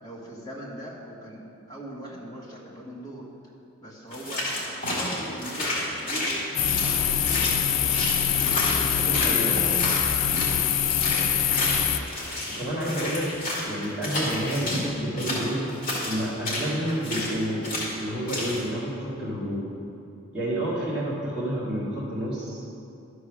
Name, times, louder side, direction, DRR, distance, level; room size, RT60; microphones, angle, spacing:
voice 1, 0.0-3.2 3.8-8.0 8.8-9.9 10.3-10.9, right 1 dB, 15° left, -5 dB, 1.4 m, -40 dB
sound 1, 4.1-10.6 10.9-14.8 15.2-17.4 17.6-17.9 18.3-18.6, left 1 dB, 40° left, 2.4 m, -30 dB
sound 2, 6.6-12.0, left 9 dB, 60° left, 0.4 m, -24 dB
voice 2, 8.9-9.6 12.5-13.3 13.6-15.7 16.0-17.7 18.0-19.7 20.3-22.6, equal, 5° right, -11 dB, 1.9 m, -29 dB
12.0 x 4.8 x 6.1 m, 2.7 s
head